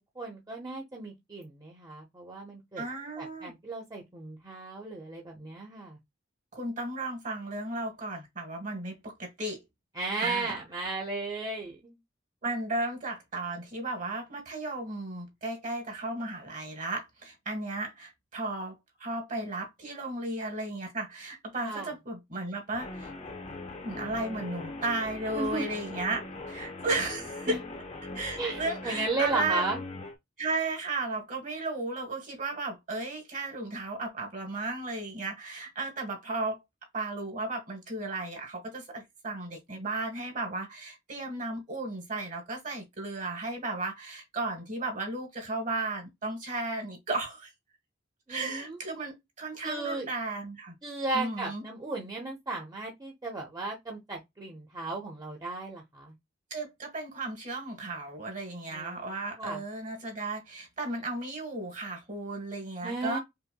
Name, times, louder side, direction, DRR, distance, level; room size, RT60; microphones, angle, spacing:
voice 1, 0.2-2.8 3.2-6.0 9.9-12.0 21.6-21.9 25.4-25.7 27.5-27.6 28.4-29.8 48.3-48.8 49.6-50.1 50.8-56.1 58.7-59.6 62.8-63.2, right 3 dB, 20° right, 0.7 m, -35 dB
voice 2, 2.8-3.5 6.5-9.6 10.2-10.6 12.4-23.1 23.8-27.6 28.1-29.6 30.4-36.6 36.9-47.5 48.3-50.8 51.1-51.6 56.5-63.2, right 2 dB, 45° right, 1.4 m, -34 dB
Guitar, 22.7-30.2, left 2 dB, 35° left, 0.7 m, -41 dB
5.5 x 2.1 x 2.2 m
head